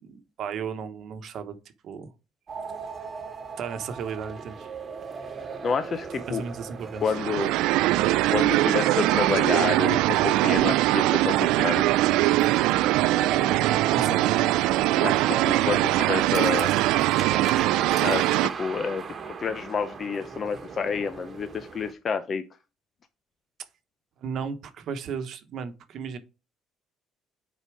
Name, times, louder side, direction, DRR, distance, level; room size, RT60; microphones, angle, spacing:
voice 1, 0.0-1.6 1.8-2.1 3.6-4.7 6.3-7.1 13.9-14.6 24.2-26.2, right 6 dB, 65° right, 1.0 m, -35 dB
sound 1, 2.5-21.9, right 5 dB, 40° right, 1.2 m, -38 dB
voice 2, 5.6-6.4 7.0-7.5 8.3-11.8 15.0-16.7 18.0-19.0 19.4-22.4, left 6 dB, 40° left, 0.6 m, -29 dB
sound 2, 7.1-18.5, right 16 dB, 85° right, 0.3 m, -22 dB
6.8 x 4.3 x 4.8 m
cardioid pair, 95°, 0 cm